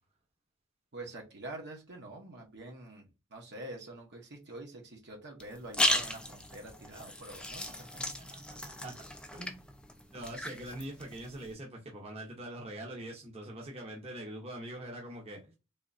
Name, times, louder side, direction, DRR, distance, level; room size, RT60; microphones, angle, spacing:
voice 1, 0.9-8.1, right 2 dB, 55° right, 1.0 m, -46 dB
sound 1, 5.4-11.5, left 1 dB, 5° left, 0.4 m, -36 dB
voice 2, 8.0-8.9 9.3-9.6 10.1-15.5, right 1 dB, 30° right, 0.9 m, -43 dB
3.6 x 2.8 x 2.6 m
head